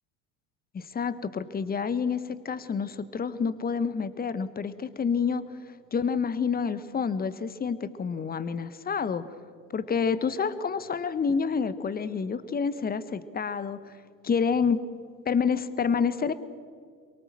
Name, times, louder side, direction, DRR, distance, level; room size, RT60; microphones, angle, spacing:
voice 1, 0.7-9.3 9.7-14.0 14.2-14.8 15.2-16.3, left 6 dB, 20° left, 15 dB, 1.2 m, -28 dB
23.0 x 23.0 x 7.5 m, 2.1 s
figure-of-eight pair, 80°, 49 cm